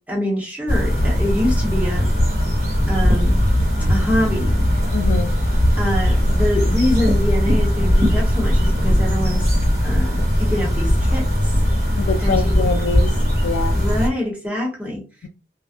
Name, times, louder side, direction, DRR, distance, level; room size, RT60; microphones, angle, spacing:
voice 1, 0.1-2.1 2.9-3.4 3.9-4.6 5.8-9.5 9.8-11.5 12.2-12.8 13.7-15.3, left 1 dB, 10° right, 1.0 m, -25 dB
sound 1, 0.7-14.1, equal, 50° right, 1.4 m, -18 dB
voice 2, 4.9-5.3 12.0-13.2 13.4-13.8, left 4 dB, 90° left, 0.3 m, -24 dB
2.5 x 2.3 x 2.4 m
head